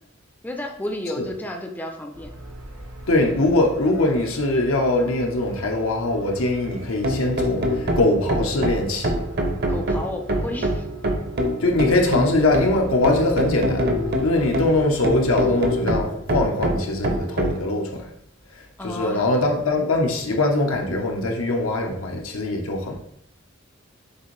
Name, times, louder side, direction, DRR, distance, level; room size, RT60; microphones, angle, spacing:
voice 1, 0.4-2.3 9.7-10.9 18.8-19.2, left 1 dB, 10° left, 3 dB, 0.4 m, -32 dB
sound 1, 2.1-15.4, right 1 dB, 80° right, 1.2 m, -40 dB
voice 2, 3.1-9.1 11.6-13.9 14.2-18.1 18.5-23.0, left 2 dB, 90° left, 2 dB, 0.8 m, -22 dB
sound 2, 6.7-17.6, equal, 55° right, 0.7 m, -25 dB
6.5 x 2.6 x 3.1 m, 0.72 s
head